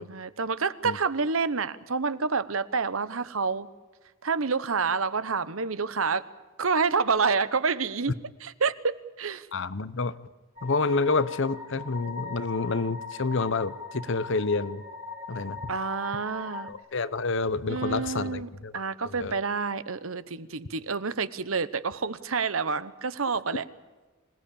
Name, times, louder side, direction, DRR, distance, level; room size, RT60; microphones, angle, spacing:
voice 1, 0.0-3.7 4.2-6.2 6.6-8.1 8.4-9.5 15.7-16.7 17.7-23.6, right 5 dB, 80° right, 14 dB, 1.0 m, -28 dB
voice 2, 9.5-10.2 10.6-14.8 15.3-15.7 16.7-18.7 19.0-19.3, left 3 dB, 60° left, 16 dB, 0.9 m, -28 dB
sound 1, 10.6-16.7, left 4 dB, 30° right, 2.7 m, -40 dB
26.0 x 18.5 x 8.6 m, 1.3 s
head